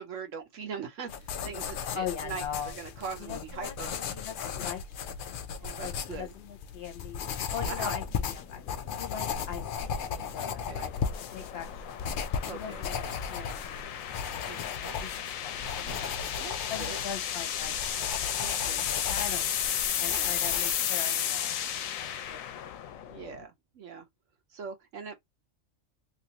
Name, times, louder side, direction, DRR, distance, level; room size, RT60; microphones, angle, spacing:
voice 1, 0.0-3.9 5.6-6.3 7.6-8.0 10.4-10.9 12.5-12.8 14.5-14.6 14.8-14.9 15.8-17.0 18.4-18.9 20.0-20.3 23.0-24.1 24.5-25.2, right 5 dB, 70° right, 1.2 m, -41 dB
sound 1, 1.1-20.7, left 7 dB, 70° left, 0.5 m, -36 dB
voice 2, 1.9-2.8 3.2-7.2 7.5-8.0 8.3-8.6 9.0-12.1 12.5-15.1 15.4-16.2 16.7-17.8 19.1-19.5 20.0-21.7 22.0-23.2, left 8 dB, 50° left, 1.0 m, -41 dB
sound 2, 7.2-23.4, left 9 dB, 85° left, 1.0 m, -34 dB
3.1 x 2.5 x 2.8 m
omnidirectional pair, 1.4 m